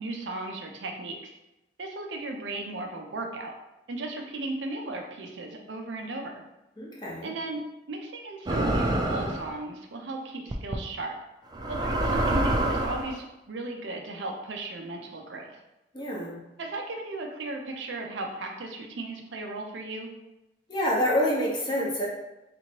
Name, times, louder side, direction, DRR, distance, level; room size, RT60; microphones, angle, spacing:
voice 1, 0.0-1.3 1.8-3.5 3.9-6.4 7.2-7.6 7.9-11.2 11.7-15.6 16.6-20.1, right 2 dB, 80° right, 3 dB, 0.5 m, -36 dB
voice 2, 6.8-7.3 15.9-16.4 20.7-22.1, equal, 25° left, -4 dB, 0.8 m, -27 dB
sound 1, 8.5-9.5 10.5-10.8 11.5-13.1, right 1 dB, 25° right, 0.4 m, -26 dB
3.4 x 3.0 x 2.9 m, 0.95 s
head